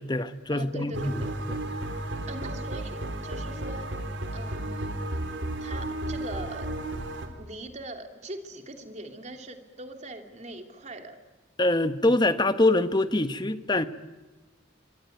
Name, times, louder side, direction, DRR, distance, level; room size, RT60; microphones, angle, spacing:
voice 1, 0.0-1.2 1.5-1.6 11.6-13.9, left 2 dB, 20° left, 1.2 m, -24 dB
voice 2, 0.5-1.3 2.3-3.9 4.3-5.0 5.6-6.7 7.4-11.2, right 2 dB, 35° right, 2.9 m, -41 dB
sound 1, 0.9-7.3, right 1 dB, 70° right, 3.8 m, -33 dB
26.5 x 24.0 x 9.3 m
head